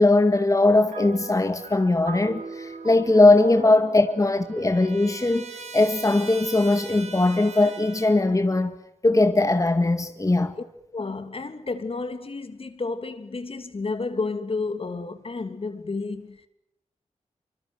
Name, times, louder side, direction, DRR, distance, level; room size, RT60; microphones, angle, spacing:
voice 1, 0.0-8.8 9.0-10.6, left 2 dB, 25° left, 2.0 m, -20 dB
sound 1, 0.9-6.4, right 5 dB, 80° right, 3.4 m, -41 dB
Trumpet, 3.7-8.4, right 4 dB, 60° right, 4.3 m, -42 dB
voice 2, 10.9-16.5, left 3 dB, 50° left, 2.8 m, -31 dB
25.0 x 25.0 x 8.0 m
cardioid pair, 55°, 13 cm